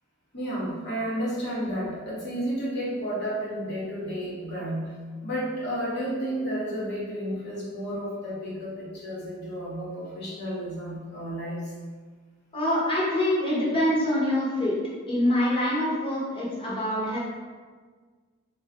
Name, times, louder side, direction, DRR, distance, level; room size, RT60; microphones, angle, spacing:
voice 1, 0.3-11.7, equal, 55° left, -7 dB, 1.3 m, -32 dB
voice 2, 12.5-14.8 15.1-17.2, left 1 dB, 25° left, -7 dB, 1.1 m, -25 dB
3.7 x 2.6 x 3.5 m, 1.5 s
head